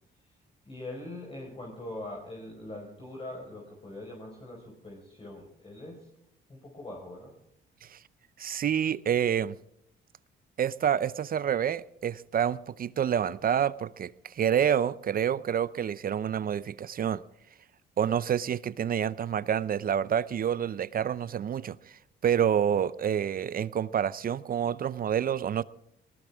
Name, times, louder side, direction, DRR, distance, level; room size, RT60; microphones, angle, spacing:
voice 1, 0.6-6.1 6.5-7.3, left 1 dB, 25° left, 4.7 m, -42 dB
voice 2, 8.4-9.6 10.6-17.2 18.0-25.6, right 9 dB, 45° right, 0.6 m, -28 dB
19.5 x 19.0 x 3.5 m
cardioid pair, 90°, 20 cm